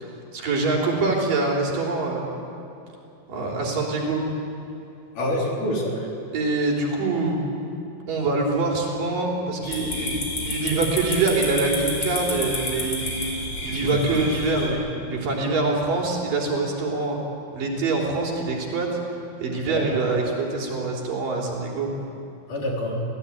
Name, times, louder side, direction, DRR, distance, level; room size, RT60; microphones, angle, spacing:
voice 1, 0.3-2.3 3.3-4.3 6.3-7.4 8.1-13.1 13.6-17.2 17.5-18.9 19.4-21.9, right 3 dB, 60° right, -1 dB, 5.1 m, -24 dB
voice 2, 5.1-6.1 13.8-14.2 19.7-19.9 22.5-23.0, left 1 dB, 55° left, -2 dB, 5.1 m, -27 dB
sound 1, 9.6-14.7, left 2 dB, 35° left, 5.8 m, -30 dB
27.0 x 17.5 x 10.0 m, 2.7 s
omnidirectional pair, 4.5 m